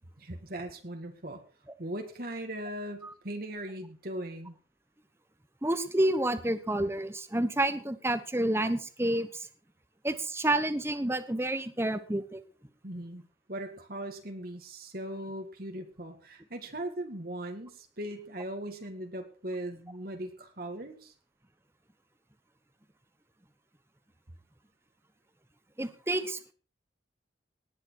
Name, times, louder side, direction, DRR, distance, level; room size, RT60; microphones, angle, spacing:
voice 1, 0.2-1.4 1.8-4.6 12.8-13.2 13.5-21.1, right 1 dB, 50° right, 4 dB, 1.9 m, -39 dB
voice 2, 5.6-9.5 10.0-12.4 25.8-26.5, right 1 dB, 15° right, 12 dB, 1.1 m, -29 dB
19.0 x 9.8 x 4.6 m, 0.40 s
head